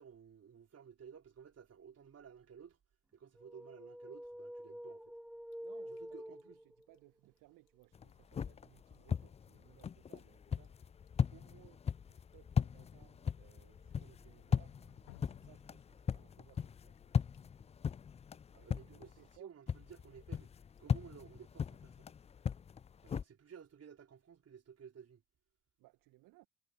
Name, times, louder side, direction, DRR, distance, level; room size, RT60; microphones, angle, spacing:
voice 1, 0.0-2.8 3.1-5.1 5.9-6.6 18.6-20.5 20.8-22.1 23.0-25.2, right 7 dB, 45° right, 4.7 m, -55 dB
sound 1, 3.4-7.0, equal, ahead, 1.6 m, -48 dB
Drip, 5.5-23.7, left 23 dB, 75° left, 2.7 m, -71 dB
voice 2, 5.6-10.9 11.3-14.8 15.2-17.0 18.5-19.6 25.8-26.5, right 19 dB, 60° right, 1.9 m, -64 dB
sound 2, 7.9-19.4 19.7-23.2, left 7 dB, 20° left, 0.4 m, -38 dB
figure-of-eight pair, 45°, 35 cm